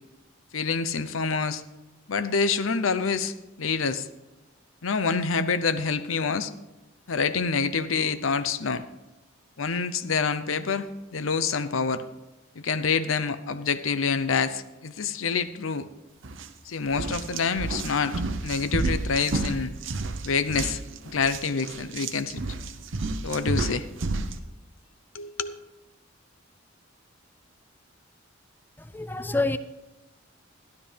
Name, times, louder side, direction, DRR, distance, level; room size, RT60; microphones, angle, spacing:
voice 1, 0.5-1.6 2.1-4.1 4.8-6.5 7.1-8.8 9.6-12.0 12.5-15.9 16.6-18.2 18.4-19.7 20.2-20.8 21.1-22.4 23.2-23.9 25.1-25.6, left 5 dB, 85° left, 12 dB, 0.7 m, -27 dB
sound 1, 16.2-16.5 16.9-24.4, right 3 dB, 70° right, 0.8 m, -31 dB
voice 2, 28.8-29.6, left 2 dB, 10° left, 12 dB, 0.4 m, -27 dB
12.5 x 12.0 x 3.4 m, 1.1 s
head